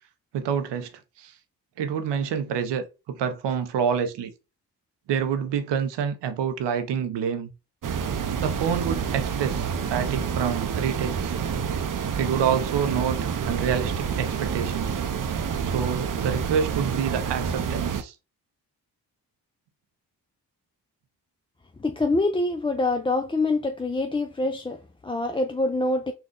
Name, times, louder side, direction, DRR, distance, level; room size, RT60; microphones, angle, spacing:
voice 1, 0.3-0.9 1.2-1.3 1.8-4.3 5.1-7.5 8.4-11.4 12.2-15.0 15.7-18.1, right 7 dB, 90° right, 0.7 m, -27 dB
sound 1, 7.8-18.0, right 7 dB, 50° right, 0.6 m, -28 dB
voice 2, 21.8-26.1, left 2 dB, 15° left, 0.4 m, -25 dB
3.9 x 2.3 x 3.7 m
cardioid pair, 50°, 41 cm